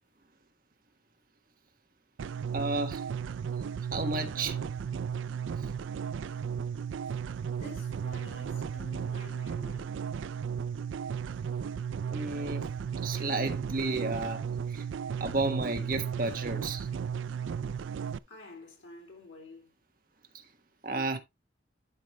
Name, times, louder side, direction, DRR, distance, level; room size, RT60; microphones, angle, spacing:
sound 1, 2.2-18.2, right 7 dB, 85° right, 0.3 m, -35 dB
voice 1, 2.5-3.0 3.9-4.6 12.1-12.6 13.0-14.8 15.2-16.9 20.3-20.4 20.8-21.2, right 2 dB, 45° right, 1.3 m, -32 dB
voice 2, 6.2-6.6 7.1-10.0 11.6-11.8 14.0-14.2 18.3-19.8, left 2 dB, 85° left, 3.1 m, -51 dB
11.5 x 5.1 x 3.0 m
head